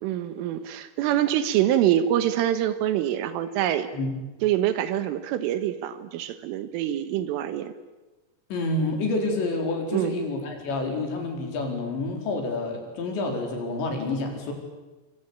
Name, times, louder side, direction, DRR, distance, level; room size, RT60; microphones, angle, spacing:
voice 1, 0.0-3.9 4.4-7.7 9.9-10.2, right 11 dB, 80° right, 11 dB, 3.7 m, -25 dB
voice 2, 8.5-14.5, left 2 dB, 60° left, 2 dB, 6.5 m, -28 dB
25.5 x 25.5 x 8.8 m, 1.1 s
omnidirectional pair, 5.9 m